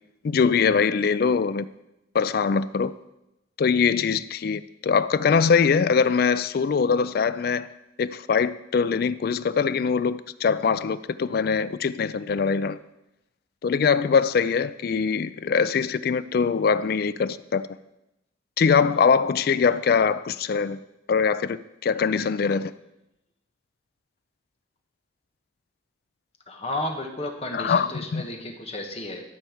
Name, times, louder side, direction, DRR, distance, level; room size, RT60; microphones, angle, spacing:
voice 1, 0.2-1.7 2.1-2.9 3.6-7.7 8.0-12.8 13.6-17.7 18.6-20.8 21.1-22.7 27.5-28.2, left 5 dB, 50° left, 0.3 m, -22 dB
voice 2, 26.5-29.2, left 1 dB, 30° left, 1.2 m, -32 dB
12.5 x 4.4 x 7.1 m
head